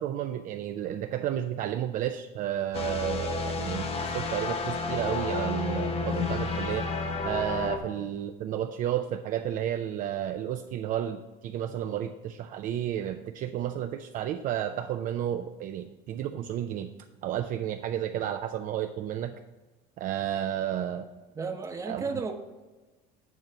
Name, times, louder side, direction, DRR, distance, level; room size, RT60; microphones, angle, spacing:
voice 1, 0.0-6.9 7.2-16.9 17.2-19.3 20.0-21.1 21.9-22.0, right 11 dB, 50° right, 7 dB, 0.4 m, -32 dB
sound 1, 2.7-7.8, left 3 dB, 35° left, 0.8 m, -31 dB
voice 2, 21.3-22.3, right 4 dB, 15° right, 5 dB, 0.8 m, -33 dB
8.9 x 3.1 x 6.5 m, 1.2 s
cardioid pair, 130°, 18 cm